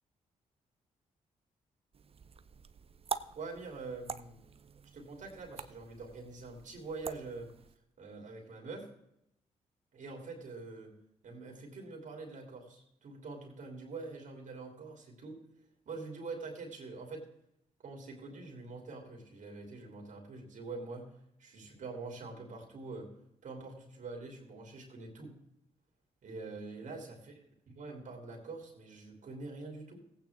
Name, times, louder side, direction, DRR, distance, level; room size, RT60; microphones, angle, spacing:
sound 1, 1.9-7.8, right 6 dB, 45° right, 0.7 m, -45 dB
voice 1, 3.3-4.4 4.9-7.5 8.0-8.9 9.9-10.9 11.2-15.4 15.8-17.3 17.8-23.1 23.4-25.4 26.2-27.3 27.7-30.1, right 3 dB, 65° right, 1 dB, 2.9 m, -45 dB
16.0 x 8.9 x 3.5 m, 0.80 s
supercardioid pair, 60°, 14 cm